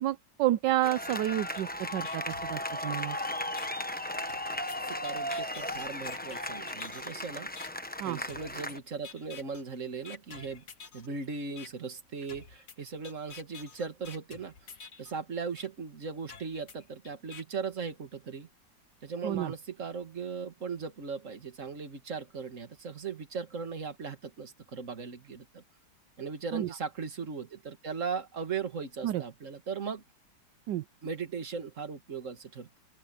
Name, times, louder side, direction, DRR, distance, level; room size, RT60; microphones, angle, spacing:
voice 1, 0.0-3.2 8.0-8.2 19.2-19.5 26.5-26.7 29.0-29.2 30.7-30.8, right 14 dB, 75° right, 1.3 m, -30 dB
sound 1, 0.8-8.8, left 1 dB, 10° left, 0.6 m, -36 dB
sound 2, 1.5-1.6 2.0-3.1 3.6-3.7 4.3-7.1 7.6-7.7 8.3-8.7 9.0-9.6 10.0-11.1 11.6-11.7 12.3-15.1 15.6-15.7 16.3-17.4, left 6 dB, 50° left, 1.9 m, -48 dB
voice 2, 4.8-7.5 8.0-10.6 10.9-14.5 15.0-18.5 19.0-25.6 26.2-30.0 31.0-32.8, right 5 dB, 45° right, 2.2 m, -38 dB
open air
omnidirectional pair, 2.0 m